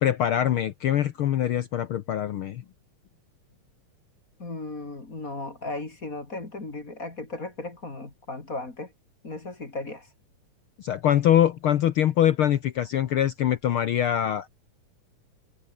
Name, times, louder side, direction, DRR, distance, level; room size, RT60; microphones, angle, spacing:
voice 1, 0.0-2.6 10.8-14.5, left 11 dB, 90° left, 1.1 m, -23 dB
voice 2, 4.4-8.9 9.2-10.1, left 2 dB, 25° left, 3.6 m, -36 dB
omnidirectional pair, 3.7 m